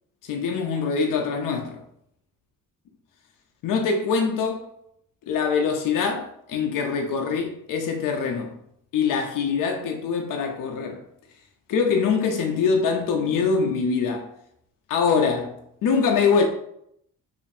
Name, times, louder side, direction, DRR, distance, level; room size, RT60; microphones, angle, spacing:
voice 1, 0.2-1.8 3.6-4.6 5.3-8.6 8.9-11.0 11.7-14.3 14.9-16.4, left 5 dB, 65° left, 0.5 m, -24 dB
4.9 x 2.4 x 2.7 m
wide cardioid pair, 145°, 35 cm